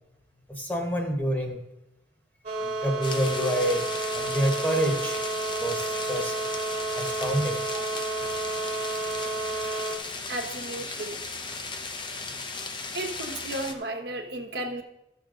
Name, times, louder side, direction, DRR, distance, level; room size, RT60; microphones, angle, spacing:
voice 1, 0.5-1.6 2.6-3.9 4.1-5.2 5.6-6.3 6.9-7.6, equal, 10° left, 2 dB, 1.2 m, -27 dB
sound 1, 2.4-10.0, right 3 dB, 40° right, 1.6 m, -31 dB
sound 2, 3.0-13.7, left 4 dB, 25° left, 0.7 m, -36 dB
voice 2, 10.3-11.2 12.9-14.8, right 1 dB, 60° right, 3 dB, 1.2 m, -34 dB
14.5 x 6.7 x 3.8 m, 0.89 s
head